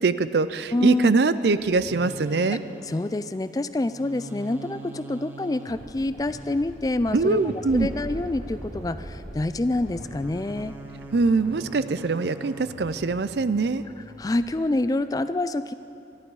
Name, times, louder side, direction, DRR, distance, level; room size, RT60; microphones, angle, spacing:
voice 1, 0.0-2.6 7.1-7.9 11.1-13.8, right 4 dB, 70° right, 14 dB, 0.5 m, -23 dB
voice 2, 0.7-1.1 2.9-10.7 14.2-15.7, left 2 dB, 20° left, 12 dB, 0.3 m, -27 dB
sound 1, 1.5-14.6, right 1 dB, 10° right, 1.0 m, -43 dB
sound 2, 7.7-11.9, equal, 40° right, 1.3 m, -40 dB
24.5 x 11.5 x 4.8 m, 2.7 s
head